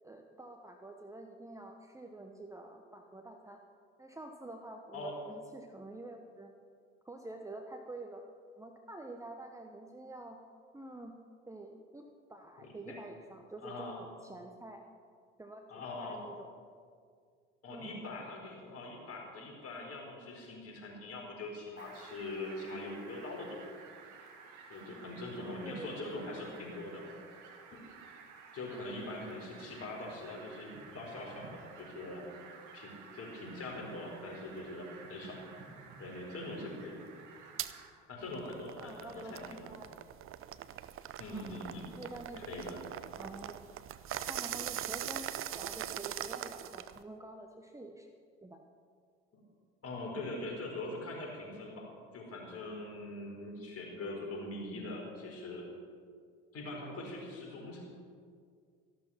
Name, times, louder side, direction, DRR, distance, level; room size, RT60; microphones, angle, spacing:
voice 1, 0.0-3.6 4.0-6.5 7.0-8.2 8.6-10.4 10.7-11.1 11.5-14.8 15.4-16.5 17.7-17.9 25.4-26.0 28.7-28.8 33.8-33.9 38.8-39.9 41.3-41.5 42.0-42.4 43.2-43.6 44.2-45.3 45.5-48.1 48.4-48.6 57.6-57.7, right 2 dB, 10° right, 3 dB, 1.0 m, -48 dB
voice 2, 12.6-12.9 13.6-14.0 15.7-16.2 17.6-23.6 24.7-27.0 27.7-27.8 28.5-32.2 32.7-35.4 36.0-37.0 38.1-39.7 41.2-41.9 42.4-42.8 49.8-51.9 52.1-55.7 56.5-57.8, left 2 dB, 40° left, -1 dB, 4.7 m, -42 dB
Fowl, 21.8-37.9, right 5 dB, 55° right, 2.0 m, -53 dB
sound 1, 37.6-37.7 38.2-47.0, right 11 dB, 40° right, 0.6 m, -41 dB
13.5 x 12.0 x 5.9 m, 2.1 s
figure-of-eight pair, 60°, 35 cm